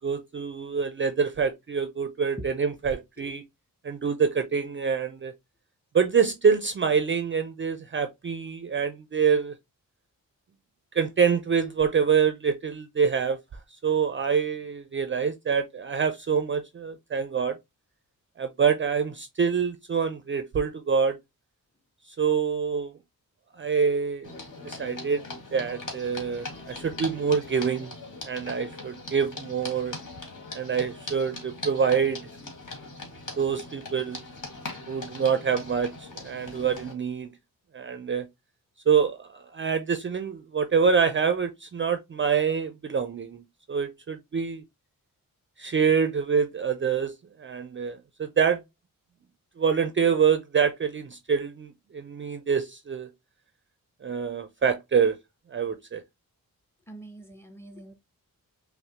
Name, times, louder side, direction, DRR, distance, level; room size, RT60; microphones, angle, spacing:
voice 1, 0.0-3.4 3.8-5.3 5.9-9.5 10.9-13.4 13.8-17.6 18.4-21.2 22.2-22.9 23.6-24.3 24.6-25.2 25.5-28.0 28.2-29.9 30.5-32.3 33.4-34.2 34.9-37.3 37.7-38.3 38.9-43.4 43.7-44.6 45.6-47.1 47.4-48.6 49.6-53.1 54.0-55.2 55.5-56.0, right 6 dB, 35° right, 0.4 m, -26 dB
sound 1, 24.2-36.9, left 2 dB, 60° left, 1.7 m, -40 dB
voice 2, 56.9-57.9, right 1 dB, 5° left, 0.7 m, -43 dB
5.5 x 2.1 x 2.8 m
wide cardioid pair, 100°, 34 cm